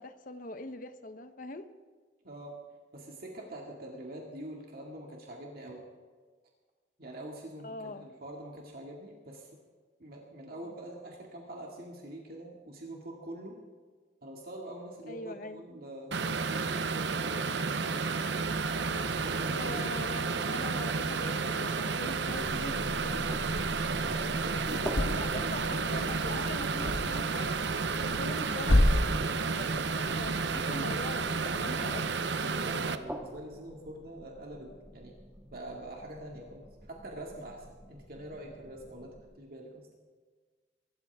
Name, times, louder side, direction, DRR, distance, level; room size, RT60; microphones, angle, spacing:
voice 1, 0.0-1.7 7.6-8.1 15.1-15.6 19.5-23.6 24.7-27.6 28.0-28.7 29.5-32.1, left 2 dB, 50° left, 9 dB, 1.0 m, -42 dB
voice 2, 2.2-2.6 2.9-5.8 7.0-9.5 10.0-13.6 14.2-18.4 18.9-19.8 24.0-25.6 32.4-35.2 35.5-39.9, right 1 dB, 55° right, -1 dB, 2.3 m, -45 dB
sound 1, 16.1-33.0, right 4 dB, 75° right, 0.8 m, -31 dB
sound 2, 18.4-31.9, left 1 dB, 65° left, 1.3 m, -35 dB
sound 3, 22.4-39.2, equal, 5° right, 1.7 m, -46 dB
23.5 x 13.5 x 3.6 m, 1.5 s
head